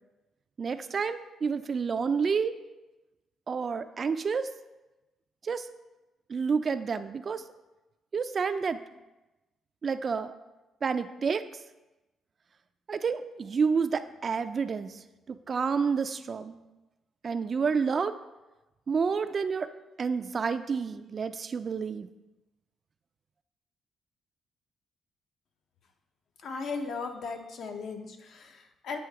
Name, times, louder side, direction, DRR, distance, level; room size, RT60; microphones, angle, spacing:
voice 1, 0.6-2.6 3.5-4.5 5.4-5.7 6.3-7.4 8.1-8.8 9.8-10.3 10.8-11.4 12.9-15.0 15.3-16.6 17.2-18.1 18.9-19.7 20.0-22.1, right 5 dB, 45° right, 11 dB, 0.3 m, -29 dB
voice 2, 26.4-29.0, left 4 dB, 65° left, 5 dB, 0.7 m, -37 dB
8.1 x 2.8 x 4.6 m, 1.1 s
cardioid pair, 90°, 0 cm